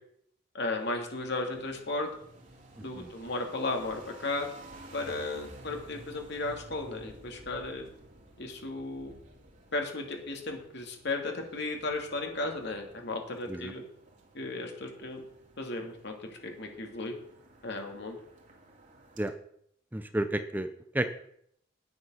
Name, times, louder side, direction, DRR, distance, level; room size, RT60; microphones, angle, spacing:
voice 1, 0.5-2.1 2.8-4.5 4.9-7.9 8.4-9.1 9.7-13.8 14.3-15.2 15.6-17.2 17.6-18.2, left 2 dB, 60° left, 3 dB, 2.6 m, -35 dB
sound 1, 0.7-19.3, right 1 dB, 40° right, 2.6 m, -54 dB
voice 2, 19.9-20.7 20.9-21.1, right 1 dB, 10° right, 9 dB, 0.6 m, -31 dB
10.0 x 9.3 x 6.4 m, 0.68 s
head